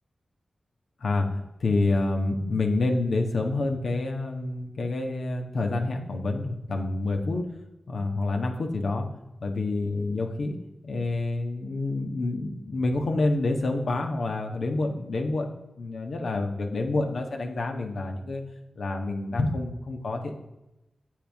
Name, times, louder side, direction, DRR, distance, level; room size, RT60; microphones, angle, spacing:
voice 1, 1.0-7.4 7.9-9.1 9.4-10.6 10.8-18.4 18.7-20.4, left 2 dB, 75° left, 3 dB, 1.5 m, -28 dB
9.8 x 7.6 x 3.6 m, 0.94 s
cardioid pair, 50°, 0 cm